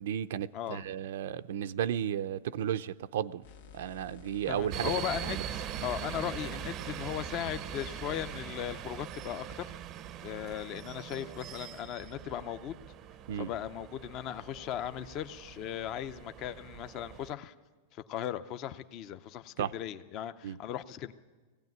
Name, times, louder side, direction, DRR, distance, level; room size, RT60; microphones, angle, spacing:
voice 1, 0.0-3.4 3.7-4.9 5.3-5.4 13.3-13.5 19.6-19.7 20.4-20.6, right 10 dB, 70° right, 0.5 m, -33 dB
voice 2, 0.5-0.9 4.5-9.7 10.2-12.8 13.3-17.5 17.9-21.1, left 10 dB, 35° left, 0.6 m, -37 dB
sound 1, 3.4-8.4, left 7 dB, 75° left, 1.9 m, -52 dB
sound 2, 4.7-17.3, right 10 dB, 30° right, 0.6 m, -42 dB
17.5 x 15.5 x 9.4 m
supercardioid pair, 160°, 0 cm